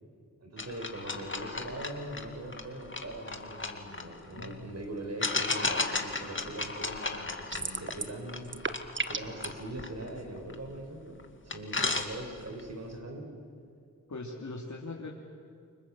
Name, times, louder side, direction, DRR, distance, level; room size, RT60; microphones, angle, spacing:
voice 1, 0.4-8.6 9.1-11.2 11.4-13.3, right 1 dB, 50° right, 2 dB, 5.6 m, -41 dB
sound 1, 0.6-4.5 5.2-10.8 11.2-11.3 11.5-12.6, left 3 dB, 35° left, 2.4 m, -35 dB
voice 2, 4.3-4.7 14.1-15.1, left 2 dB, 60° left, -2 dB, 3.0 m, -40 dB
sound 2, 7.5-8.2 8.4-9.5, right 4 dB, 35° right, 1.4 m, -34 dB
29.5 x 25.0 x 7.7 m, 2.4 s
cardioid pair, 55°, 33 cm